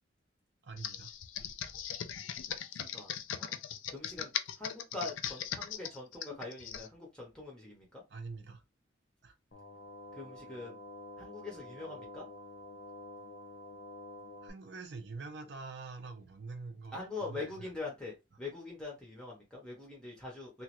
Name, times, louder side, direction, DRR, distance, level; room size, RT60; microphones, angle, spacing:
voice 1, 0.6-1.1 1.6-1.7 8.1-8.6 9.2-9.3 14.4-17.7, right 4 dB, 60° right, 0.6 m, -45 dB
Computer keyboard, 0.8-6.9, left 9 dB, 85° left, 0.4 m, -39 dB
voice 2, 2.7-3.6 3.9-4.3 4.6-8.0 10.1-10.8 11.2-12.3 16.9-20.6, left 3 dB, 5° left, 0.6 m, -43 dB
sound 1, 9.5-14.5, left 1 dB, 65° left, 0.8 m, -49 dB
3.0 x 2.3 x 2.9 m
head